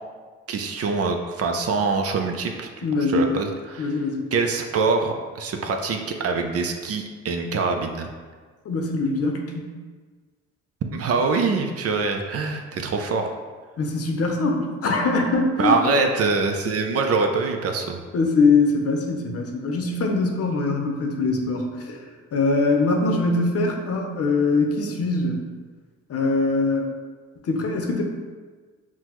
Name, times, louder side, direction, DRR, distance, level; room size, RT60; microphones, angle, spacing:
voice 1, 0.5-3.9 4.3-8.1 10.9-13.3 15.6-18.0, right 4 dB, 50° right, 4 dB, 0.5 m, -24 dB
voice 2, 2.8-3.4 3.8-4.3 8.6-9.7 13.8-15.8 18.1-22.0 22.3-25.4 26.1-27.0 27.4-28.0, left 3 dB, 50° left, 2 dB, 0.7 m, -22 dB
5.8 x 2.2 x 3.0 m, 1.4 s
cardioid pair, 90°, 30 cm